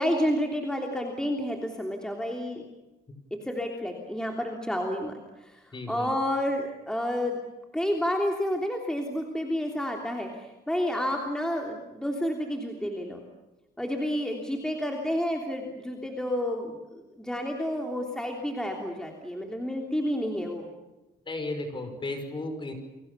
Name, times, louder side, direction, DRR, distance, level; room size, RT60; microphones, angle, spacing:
voice 1, 0.0-2.6 3.4-7.4 7.7-13.2 13.8-20.7, equal, 5° left, 2 dB, 3.2 m, -30 dB
voice 2, 5.7-6.1 21.3-22.7, left 2 dB, 30° left, 7 dB, 5.4 m, -34 dB
29.5 x 23.0 x 6.9 m, 1.0 s
cardioid pair, 140°, 18 cm